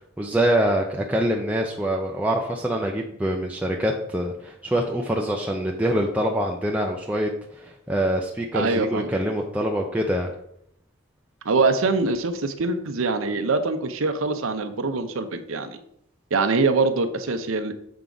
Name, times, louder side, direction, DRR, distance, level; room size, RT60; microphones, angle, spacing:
voice 1, 0.2-10.3, right 1 dB, 5° right, 0 dB, 0.5 m, -25 dB
voice 2, 8.5-9.1 11.4-15.8 16.3-17.7, right 3 dB, 80° right, 8 dB, 0.7 m, -23 dB
7.0 x 4.6 x 3.9 m, 0.74 s
head